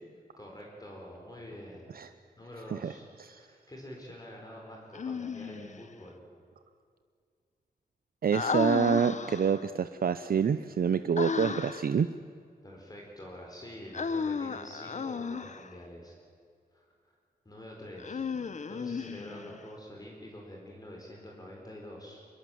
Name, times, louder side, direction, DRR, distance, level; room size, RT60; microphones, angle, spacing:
voice 1, 0.4-2.0 2.4-6.3 12.6-16.1 16.7-16.9 17.4-18.2 18.7-22.3, left 1 dB, 25° left, -1 dB, 4.4 m, -46 dB
Human voice, 4.9-5.8 8.3-9.7 11.2-11.9 13.9-15.7 18.0-19.6, left 5 dB, 45° left, 0.9 m, -34 dB
voice 2, 8.2-12.1, right 7 dB, 65° right, 11 dB, 0.6 m, -27 dB
24.0 x 22.0 x 7.8 m, 2.2 s
wide cardioid pair, 150°, 16 cm